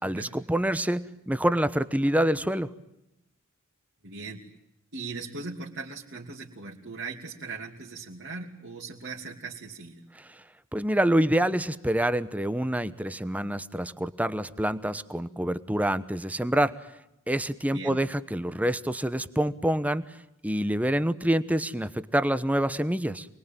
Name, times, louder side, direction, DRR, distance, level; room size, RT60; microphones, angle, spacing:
voice 1, 0.0-2.7 10.1-10.4 10.7-16.7 17.3-20.0 20.4-23.3, right 1 dB, 5° right, 13 dB, 1.1 m, -26 dB
voice 2, 4.0-4.5 4.9-10.0 17.7-18.0, right 3 dB, 55° right, -2 dB, 2.9 m, -39 dB
28.5 x 21.5 x 9.1 m, 0.86 s
head